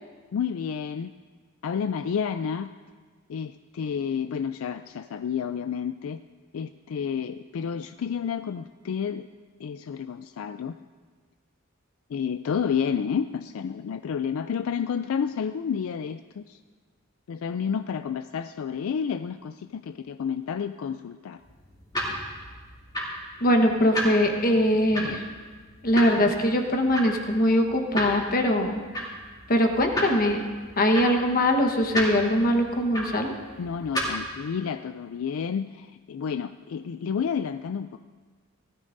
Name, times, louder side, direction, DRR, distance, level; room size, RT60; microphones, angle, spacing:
voice 1, 0.3-1.1 1.6-2.7 3.3-6.2 6.5-9.3 9.6-10.7 12.1-16.6 17.3-21.4 33.6-38.0, left 7 dB, 75° left, 10 dB, 0.3 m, -30 dB
sound 1, 21.4-34.3, equal, 20° left, 2.7 m, -34 dB
voice 2, 23.4-25.2 25.8-29.1 29.5-30.4 30.8-33.3, left 1 dB, 45° left, 4 dB, 1.2 m, -22 dB
19.0 x 13.5 x 2.6 m, 1.5 s
head